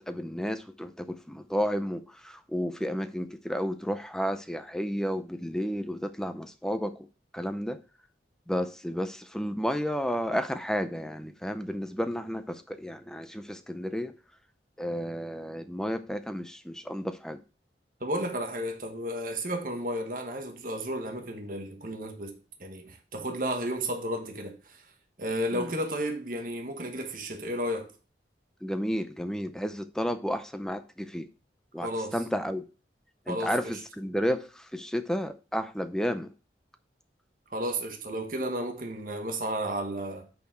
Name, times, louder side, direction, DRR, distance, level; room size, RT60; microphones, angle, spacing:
voice 1, 0.0-7.1 7.3-7.8 8.5-14.1 14.8-17.4 25.5-25.7 28.6-31.3 31.7-32.6 33.3-36.3, equal, 5° left, 0.5 m, -32 dB
voice 2, 18.0-24.8 25.2-27.9 31.8-32.2 33.3-33.8 37.5-40.3, right 1 dB, 50° right, 1.2 m, -33 dB
8.4 x 4.4 x 4.4 m
head